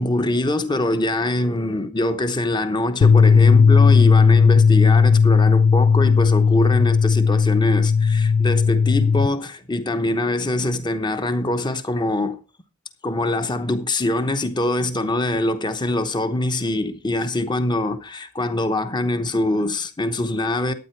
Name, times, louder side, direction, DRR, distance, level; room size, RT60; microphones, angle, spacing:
voice 1, 0.0-12.4 13.0-20.7, left 1 dB, 20° left, 0.9 m, -23 dB
sound 1, 3.0-9.3, left 5 dB, 60° left, 0.5 m, -15 dB
12.0 x 9.2 x 4.6 m
head